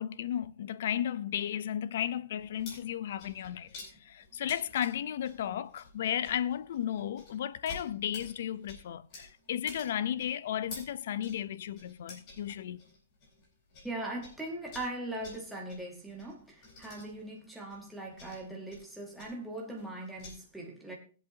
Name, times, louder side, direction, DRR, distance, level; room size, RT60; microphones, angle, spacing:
voice 1, 0.0-3.7 4.0-12.8, left 10 dB, 50° left, 0.5 m, -34 dB
sound 1, 2.4-13.9 14.2-20.3, left 2 dB, 25° left, 4.2 m, -51 dB
voice 2, 13.8-20.9, right 1 dB, ahead, 1.1 m, -40 dB
20.0 x 8.0 x 2.7 m
hypercardioid pair, 180°, 0 cm